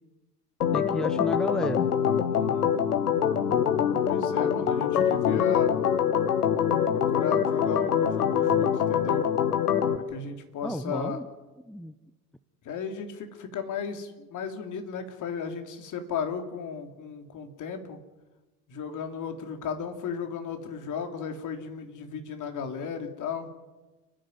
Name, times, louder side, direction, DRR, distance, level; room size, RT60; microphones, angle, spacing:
Organ, 0.6-10.0, left 8 dB, 75° left, 1.5 m, -24 dB
voice 1, 0.7-1.9 10.6-11.3 11.7-11.9, equal, ahead, 13 dB, 0.9 m, -32 dB
voice 2, 2.3-2.8 4.0-5.7 6.9-9.3 9.9-11.2 12.6-18.0 18.7-23.5, left 6 dB, 40° left, 6 dB, 3.2 m, -35 dB
30.0 x 10.5 x 9.6 m, 1.1 s
figure-of-eight pair, 75°, 46 cm